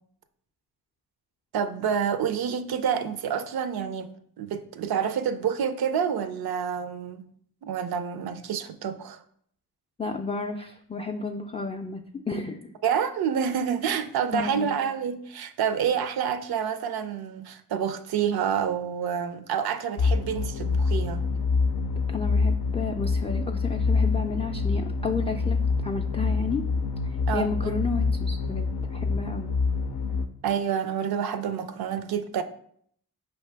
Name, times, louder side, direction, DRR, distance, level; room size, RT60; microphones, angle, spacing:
voice 1, 1.5-7.3 7.6-9.2 12.8-21.2 27.3-27.7 30.4-32.4, right 7 dB, 75° right, 0.5 m, -28 dB
voice 2, 10.0-12.7 14.3-14.7 22.1-26.7 27.3-29.5, left 4 dB, 15° left, 0.3 m, -32 dB
sound 1, 20.0-30.3, left 4 dB, 85° left, 0.5 m, -26 dB
5.1 x 2.8 x 3.3 m
cardioid pair, 45°, 38 cm